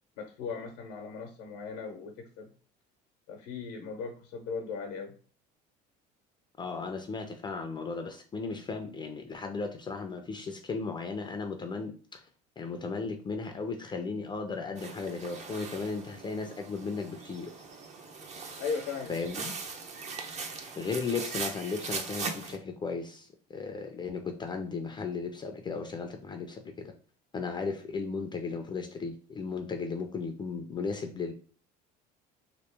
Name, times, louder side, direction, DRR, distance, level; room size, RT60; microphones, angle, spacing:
voice 1, 0.2-2.5 3.3-5.1 18.6-19.4, left 5 dB, 90° left, 0.8 m, -38 dB
voice 2, 6.6-12.2 12.6-17.5 19.1-19.5 20.8-26.9 27.3-31.3, left 4 dB, 25° left, 0.4 m, -35 dB
sound 1, 14.8-22.6, right 4 dB, 35° right, 0.6 m, -40 dB
3.0 x 2.9 x 3.3 m
cardioid pair, 115°, 19 cm